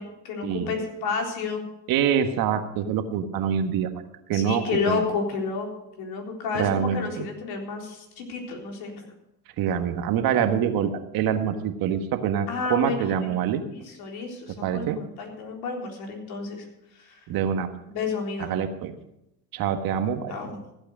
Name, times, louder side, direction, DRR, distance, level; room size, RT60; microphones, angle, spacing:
voice 1, 0.0-1.7 4.3-5.7 6.0-9.1 12.5-13.3 13.7-16.7 16.9-17.2 17.9-18.5 20.3-20.6, left 4 dB, 55° left, 1 dB, 3.9 m, -31 dB
voice 2, 1.9-3.9 4.3-5.0 6.5-7.2 9.6-13.6 14.6-15.0 17.3-17.7 18.5-18.9 19.5-20.3, right 8 dB, 50° right, 8 dB, 1.5 m, -25 dB
15.5 x 8.4 x 6.4 m, 0.86 s
hypercardioid pair, 80°, 44 cm